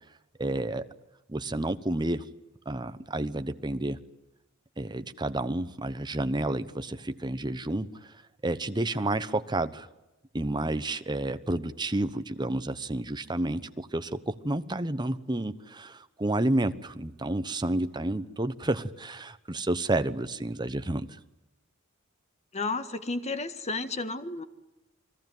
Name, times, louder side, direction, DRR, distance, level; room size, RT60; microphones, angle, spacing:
voice 1, 0.4-0.9 1.3-2.3 2.7-4.0 4.8-8.1 8.4-9.9 10.3-21.1, right 1 dB, 20° right, 10 dB, 1.1 m, -30 dB
voice 2, 22.5-24.4, left 3 dB, 30° left, 10 dB, 1.6 m, -32 dB
29.0 x 20.0 x 9.4 m, 0.98 s
head